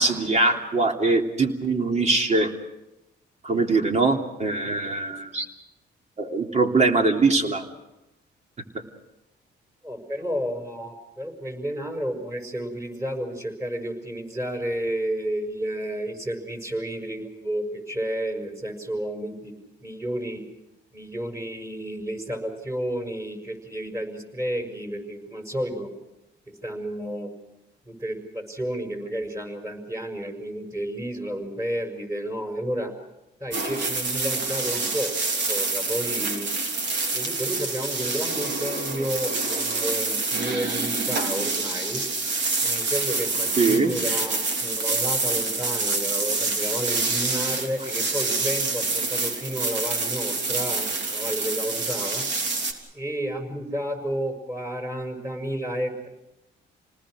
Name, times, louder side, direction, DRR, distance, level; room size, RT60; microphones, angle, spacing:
voice 1, 0.0-2.5 3.4-5.5 6.2-7.6 43.6-43.9, right 3 dB, 35° right, 3 dB, 3.3 m, -22 dB
voice 2, 9.8-19.5 19.8-20.4 20.9-25.9 26.6-27.3 27.9-32.9 33.4-36.5 37.1-42.0 42.6-52.2 52.9-56.1, equal, 15° right, 5 dB, 6.4 m, -31 dB
sound 1, 33.5-52.7, right 3 dB, 65° right, 3.6 m, -27 dB
28.5 x 19.5 x 6.5 m, 0.94 s
cardioid pair, 90°, 20 cm